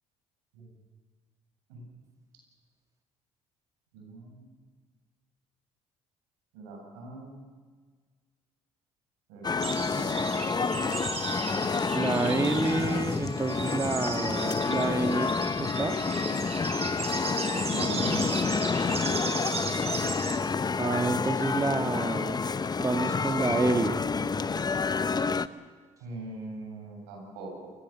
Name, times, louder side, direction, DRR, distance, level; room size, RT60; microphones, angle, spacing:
voice 1, 3.9-4.5 6.5-7.4 9.3-10.4 17.7-18.4 26.0-27.7, right 3 dB, 80° right, 1 dB, 7.9 m, -41 dB
sound 1, 9.4-25.5, left 4 dB, 25° left, 0.9 m, -29 dB
sound 2, 9.6-20.4, right 4 dB, 45° right, 5.0 m, -36 dB
voice 2, 11.9-15.3 15.6-16.0 20.8-22.4 22.8-24.0, right 3 dB, 20° right, 6 dB, 1.5 m, -28 dB
29.0 x 16.0 x 7.3 m, 1.5 s
hypercardioid pair, 60°, 15 cm